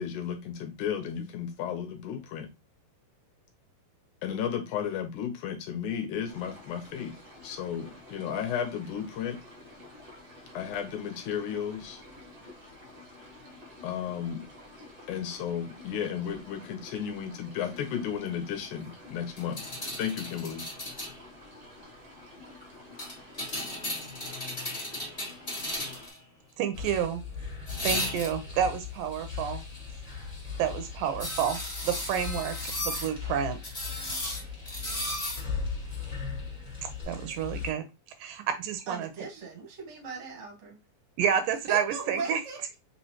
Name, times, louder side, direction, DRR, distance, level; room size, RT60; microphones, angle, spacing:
voice 1, 0.0-2.5 4.2-7.2 7.4-9.4 10.5-12.0 13.8-14.5 15.1-19.6 20.0-20.7, left 8 dB, 75° left, 1.9 m, -33 dB
sound 1, 6.3-26.1, left 1 dB, 65° right, 0.9 m, -50 dB
sound 2, 19.4-21.2 23.0-26.2 27.7-28.5 31.2-33.1 33.6-35.4 37.0-37.1, left 1 dB, 25° left, 0.8 m, -35 dB
voice 2, 26.6-27.2 27.8-29.6 30.6-33.6 37.1-37.9 38.2-39.1 41.2-42.4, right 8 dB, 85° right, 2.2 m, -29 dB
sound 3, 26.7-37.7, left 6 dB, 5° right, 1.0 m, -38 dB
voice 3, 38.9-40.8 41.7-42.6, right 4 dB, 40° right, 0.9 m, -38 dB
5.6 x 3.0 x 2.9 m
omnidirectional pair, 4.0 m